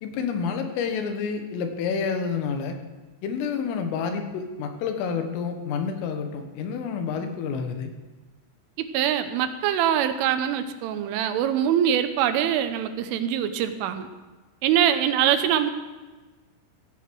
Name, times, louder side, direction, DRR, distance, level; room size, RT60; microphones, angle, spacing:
voice 1, 0.0-2.8 3.2-7.9, left 6 dB, 90° left, 6 dB, 4.0 m, -29 dB
voice 2, 8.8-14.1 14.6-15.7, right 10 dB, 85° right, 9 dB, 3.4 m, -23 dB
16.0 x 16.0 x 4.8 m, 1.2 s
omnidirectional pair, 5.7 m